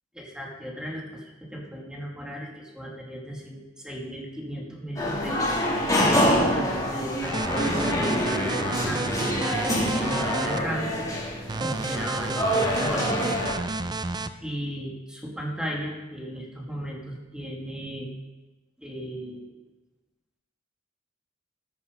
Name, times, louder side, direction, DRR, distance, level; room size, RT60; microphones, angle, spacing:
voice 1, 0.2-5.5 5.8-9.2 9.7-10.9 11.6-13.2 14.4-18.1 18.8-19.6, equal, 5° right, -2 dB, 2.2 m, -36 dB
sound 1, 5.0-13.5, equal, 20° left, 2.9 m, -26 dB
sound 2, 7.2-10.6 11.5-14.3, right 3 dB, 20° right, 0.4 m, -31 dB
13.5 x 7.2 x 5.2 m, 1.1 s
head